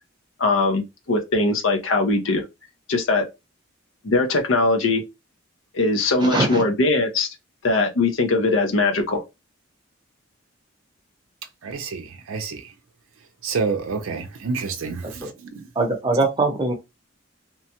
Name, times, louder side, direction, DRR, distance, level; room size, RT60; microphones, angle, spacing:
voice 1, 0.4-2.4 2.9-3.3 4.0-5.0 5.7-7.3 7.6-9.2, left 3 dB, 75° left, 0.6 m, -21 dB
voice 2, 6.2-6.6 15.0-15.3 15.8-16.7, right 2 dB, 20° right, 0.7 m, -22 dB
voice 3, 11.6-12.7 13.4-15.7, right 4 dB, 90° right, 0.5 m, -29 dB
3.0 x 2.1 x 2.8 m
head